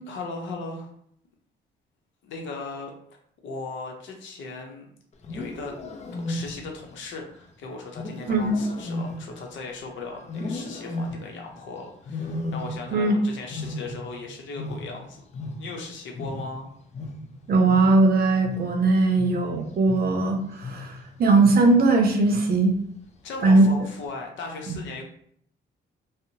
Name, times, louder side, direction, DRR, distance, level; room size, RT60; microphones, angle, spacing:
voice 1, 0.1-0.9 2.2-2.9 3.4-4.8 5.3-5.7 6.3-15.2 15.6-16.7 23.2-25.0, left 3 dB, 75° left, 1 dB, 0.7 m, -37 dB
Wild animals, 5.1-6.9 7.9-9.8 10.3-11.5 12.1-13.1 13.4-15.9 16.1-21.1 21.4-21.9 22.3-22.7 23.5-23.9, left 2 dB, 35° left, 0.5 m, -35 dB
voice 2, 8.3-8.6 12.9-13.1 17.5-22.7 23.4-23.7, right 3 dB, 50° right, 3 dB, 0.6 m, -19 dB
2.7 x 2.0 x 2.6 m, 0.65 s
cardioid pair, 90°, 20 cm